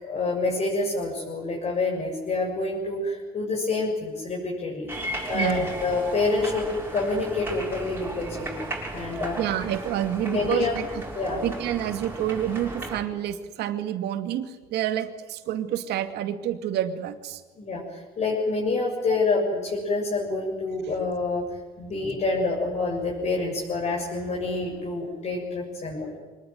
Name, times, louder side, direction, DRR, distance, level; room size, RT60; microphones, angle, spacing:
voice 1, 0.0-4.9 5.3-8.7 8.9-9.4 10.2-10.7 11.1-11.4 17.6-21.4 21.8-26.1, left 3 dB, 40° left, -3 dB, 7.4 m, -27 dB
sound 1, 4.9-13.0, right 1 dB, 15° right, 6.6 m, -35 dB
voice 2, 5.3-5.8 9.4-11.0 11.4-17.4, right 11 dB, 80° right, 8 dB, 2.4 m, -28 dB
25.0 x 20.0 x 9.4 m, 1.4 s
cardioid pair, 110°, 17 cm